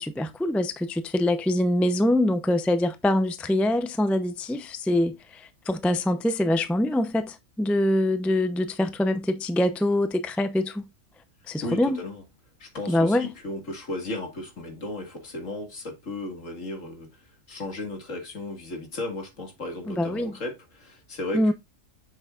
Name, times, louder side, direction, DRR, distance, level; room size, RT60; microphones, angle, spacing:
voice 1, 0.0-10.9 11.5-12.0 12.9-13.3 19.9-20.3 21.3-21.5, left 1 dB, ahead, 0.5 m, -24 dB
voice 2, 11.6-12.2 12.6-21.5, left 2 dB, 70° left, 2.5 m, -35 dB
7.8 x 6.8 x 2.5 m
omnidirectional pair, 1.4 m